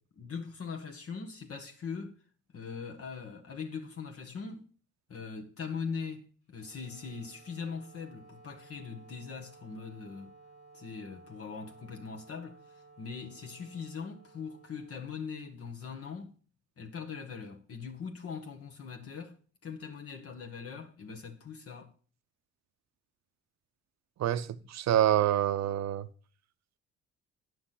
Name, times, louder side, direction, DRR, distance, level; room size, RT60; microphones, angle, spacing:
voice 1, 0.2-2.2 2.5-4.7 5.1-10.3 10.7-16.4 16.8-19.4 19.6-21.9, left 5 dB, 50° left, 1.3 m, -41 dB
Wind instrument woodwind instrument, 6.5-15.8, right 4 dB, 90° left, 3.6 m, -57 dB
voice 2, 24.2-26.1, right 11 dB, 60° right, 0.7 m, -27 dB
9.4 x 6.0 x 5.7 m
cardioid pair, 90°, 30 cm